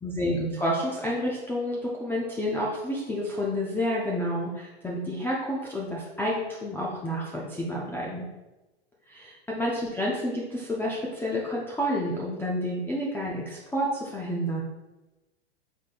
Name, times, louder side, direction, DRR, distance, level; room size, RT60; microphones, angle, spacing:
voice 1, 0.0-8.3 9.1-14.6, equal, 5° left, -4 dB, 0.4 m, -29 dB
4.8 x 3.8 x 2.4 m, 1.1 s
hypercardioid pair, 120°, 31 cm